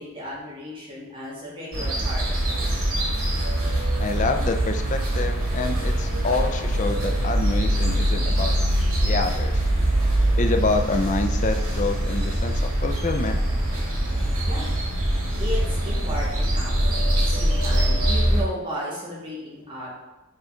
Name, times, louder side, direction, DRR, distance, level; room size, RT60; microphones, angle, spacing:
voice 1, 0.0-2.7 14.5-14.7 15.4-19.9, equal, 25° right, -6 dB, 2.0 m, -34 dB
sound 1, 1.7-18.4, right 1 dB, 80° right, 2.1 m, -23 dB
voice 2, 4.0-8.5 9.0-9.5 10.4-13.4, left 3 dB, 35° left, 5 dB, 0.5 m, -27 dB
7.0 x 4.1 x 3.8 m, 1.0 s
head